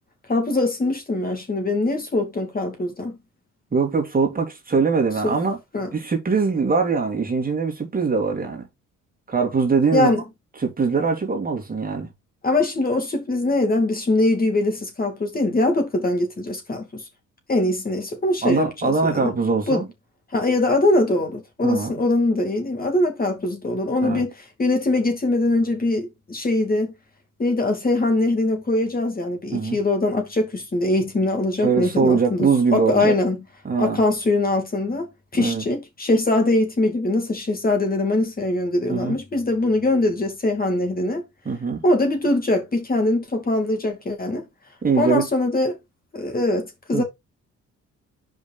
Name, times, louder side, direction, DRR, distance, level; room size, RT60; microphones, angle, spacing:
voice 1, 0.3-3.2 5.2-5.3 5.7-5.9 9.9-10.2 12.4-17.0 17.5-19.3 19.7-19.8 20.3-24.3 24.6-26.9 27.4-33.4 33.8-35.1 35.3-41.2 41.8-44.4 45.0-45.8 46.1-47.0, left 2 dB, 30° left, 2.6 m, -22 dB
voice 2, 3.7-5.6 5.9-8.6 9.3-10.1 10.6-12.1 18.4-19.9 21.6-21.9 24.0-24.2 29.5-29.8 31.6-33.1 33.6-34.0 35.4-35.7 38.9-39.2 41.4-41.8 44.8-45.3 46.9-47.0, right 5 dB, 30° right, 2.5 m, -22 dB
5.3 x 5.0 x 4.3 m
cardioid pair, 90°, 30 cm